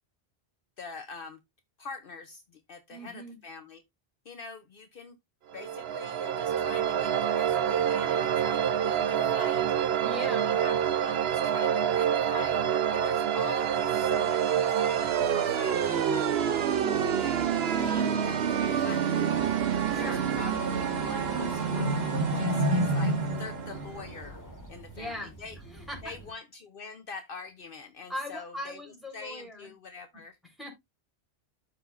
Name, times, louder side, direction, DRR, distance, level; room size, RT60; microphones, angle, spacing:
voice 1, 0.8-1.4 1.8-3.8 4.2-5.2 5.5-9.6 10.2-12.6 12.9-16.3 17.1-17.4 17.7-19.5 20.0-22.1 22.3-24.4 24.7-25.6 26.0-28.8 29.1-30.4, left 4 dB, 60° left, 1.0 m, -44 dB
voice 2, 2.9-3.4 10.0-10.6 19.9-20.2 24.9-25.3 25.7-26.1 28.1-29.7 30.6-30.7, equal, ahead, 4.0 m, -39 dB
sound 1, 5.5-24.2, right 9 dB, 75° right, 0.9 m, -27 dB
sound 2, 13.8-24.5, right 1 dB, 45° right, 1.4 m, -34 dB
sound 3, 19.3-26.3, equal, 15° left, 1.8 m, -49 dB
13.0 x 4.8 x 2.5 m
omnidirectional pair, 1.1 m